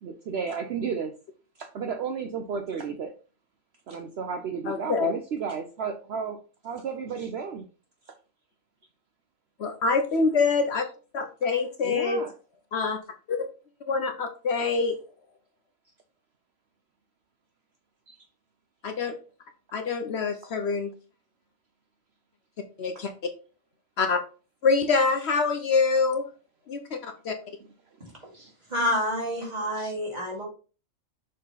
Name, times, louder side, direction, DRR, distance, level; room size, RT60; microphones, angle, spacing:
voice 1, 0.0-1.1 1.6-3.1 3.9-6.4 6.6-7.7 10.7-10.8 11.8-12.3 18.1-18.2 22.8-22.9 28.3-28.5 29.7-29.9, right 6 dB, 60° right, 6 dB, 0.9 m, -33 dB
voice 2, 4.7-5.1 9.6-10.8 11.1-12.2 12.7-13.0 13.3-13.5 13.9-14.9 18.8-19.2 19.7-20.9 22.8-23.1 24.0-24.2 24.6-26.2 26.7-27.4, left 4 dB, 60° left, 7 dB, 0.9 m, -25 dB
voice 3, 28.7-30.4, left 1 dB, 30° right, -3 dB, 2.7 m, -28 dB
6.7 x 3.7 x 4.0 m, 0.36 s
omnidirectional pair, 1.4 m